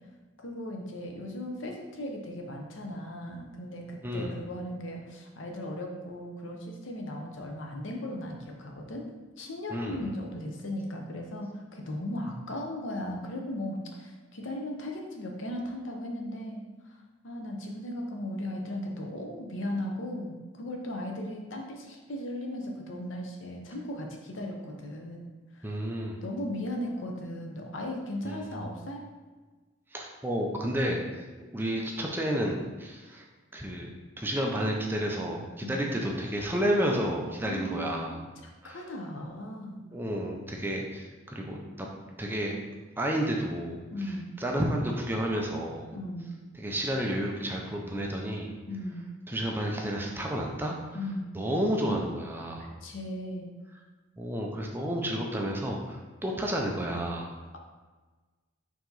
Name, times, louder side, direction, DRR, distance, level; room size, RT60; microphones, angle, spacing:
voice 1, 0.4-9.1 9.4-16.6 17.2-25.7 26.2-29.0 35.6-35.9 37.4-38.1 38.6-39.8 43.9-44.3 45.9-46.3 48.7-49.1 50.9-51.3 52.6-53.5, left 1 dB, 75° left, 1 dB, 0.7 m, -37 dB
voice 2, 9.7-10.1 25.6-26.2 28.2-28.7 29.9-31.3 31.5-33.3 33.5-33.9 34.2-38.2 38.6-38.9 39.9-41.9 42.2-42.5 43.0-45.9 46.6-48.5 49.3-51.0 51.3-52.7 54.2-57.3, equal, 10° right, 0 dB, 0.4 m, -31 dB
4.7 x 2.9 x 3.9 m, 1.3 s
head